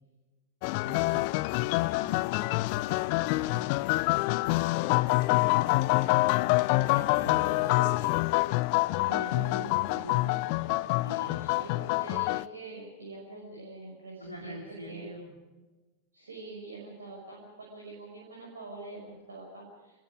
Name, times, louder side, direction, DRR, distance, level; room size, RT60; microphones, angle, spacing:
sound 1, 0.6-12.4, left 21 dB, 45° left, 0.6 m, -26 dB
voice 1, 0.8-2.2 2.7-3.7 4.4-5.7 6.9-7.6 9.0-11.4 14.2-15.3, equal, 85° left, 1 dB, 3.4 m, -44 dB
voice 2, 7.2-8.1 11.4-14.6 14.9-15.1 16.1-20.0, right 2 dB, 70° right, -1 dB, 5.8 m, -44 dB
27.5 x 21.5 x 5.0 m, 1.2 s
figure-of-eight pair, 90°, 0 cm